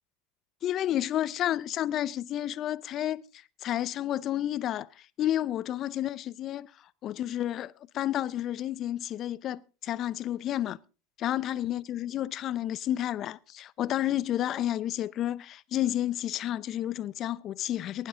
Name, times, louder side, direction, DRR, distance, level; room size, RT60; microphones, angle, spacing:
voice 1, 0.6-3.2 3.6-4.9 5.2-6.7 7.0-10.8 11.2-18.1, left 12 dB, 45° left, 0.6 m, -31 dB
19.0 x 12.0 x 3.7 m
hypercardioid pair, 85°, 0 cm